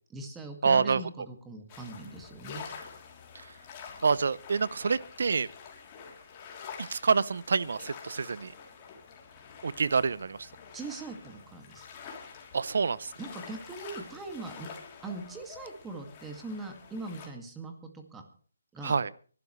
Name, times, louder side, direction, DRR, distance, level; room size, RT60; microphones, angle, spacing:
voice 1, 0.1-2.7 10.7-11.9 13.2-18.2 18.7-19.0, right 3 dB, 10° right, 4 dB, 2.1 m, -41 dB
voice 2, 0.6-1.0 4.0-5.5 6.8-8.5 9.6-10.4 12.5-13.1 18.8-19.1, right 5 dB, 65° right, 20 dB, 0.7 m, -27 dB
sound 1, 1.7-17.3, left 6 dB, 25° left, 3.2 m, -47 dB
25.0 x 12.5 x 3.2 m, 0.42 s
hypercardioid pair, 160°, 0 cm